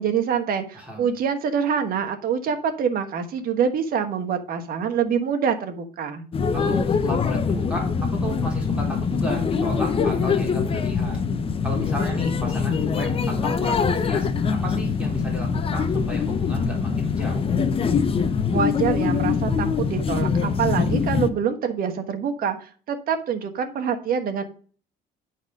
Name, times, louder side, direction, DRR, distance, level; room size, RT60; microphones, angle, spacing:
voice 1, 0.0-6.2 18.5-24.4, right 7 dB, 60° right, 6 dB, 1.3 m, -25 dB
voice 2, 0.7-1.1 6.5-11.2 11.6-17.4, equal, 5° right, -2 dB, 3.6 m, -33 dB
sound 1, 6.3-21.3, left 5 dB, 35° left, 0.7 m, -23 dB
9.7 x 4.2 x 5.2 m, 0.42 s
cardioid pair, 110°, 17 cm